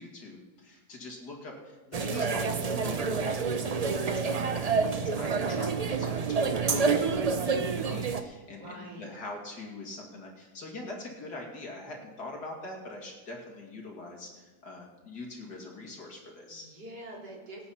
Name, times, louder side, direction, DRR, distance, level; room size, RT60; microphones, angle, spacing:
voice 1, 0.0-16.7, left 2 dB, 75° left, -1 dB, 3.0 m, -43 dB
sound 1, 1.9-8.2, right 5 dB, 60° right, 0.4 m, -28 dB
voice 2, 4.4-5.4 8.5-9.1 16.5-17.7, right 1 dB, 85° right, -3 dB, 3.7 m, -45 dB
24.0 x 8.7 x 4.3 m, 1.2 s
omnidirectional pair, 1.7 m